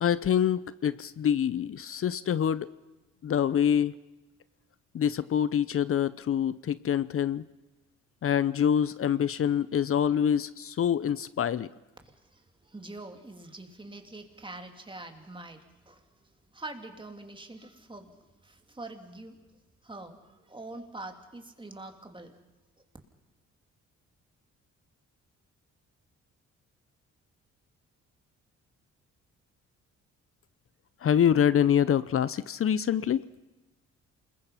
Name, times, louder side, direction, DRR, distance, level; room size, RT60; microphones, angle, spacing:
voice 1, 0.0-2.7 3.2-4.0 4.9-7.4 8.2-11.7 31.0-33.3, left 9 dB, 45° left, 17 dB, 0.7 m, -25 dB
voice 2, 12.0-16.0 16.5-18.1 18.4-19.4 19.8-22.4, right 2 dB, 15° right, 5 dB, 3.0 m, -44 dB
28.0 x 21.5 x 5.8 m, 1.1 s
cardioid pair, 90°, 30 cm